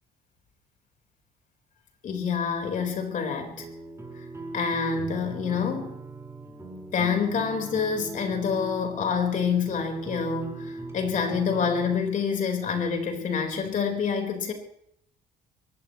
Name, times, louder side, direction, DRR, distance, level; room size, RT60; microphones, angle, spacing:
voice 1, 2.0-3.7 4.5-6.0 6.9-14.5, left 6 dB, 50° left, 4.3 m, -27 dB
sound 1, 3.6-12.0, right 2 dB, 15° right, 4.9 m, -40 dB
23.0 x 17.5 x 3.1 m
cardioid pair, 110°, 17 cm